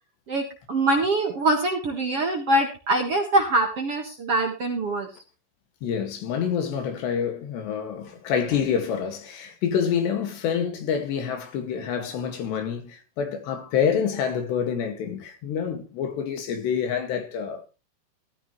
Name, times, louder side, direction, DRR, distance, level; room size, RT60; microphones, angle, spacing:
voice 1, 0.3-5.1, right 2 dB, 50° right, 1.8 m, -24 dB
voice 2, 5.8-17.7, left 7 dB, 80° left, 4.2 m, -27 dB
14.5 x 14.0 x 3.2 m
omnidirectional pair, 4.8 m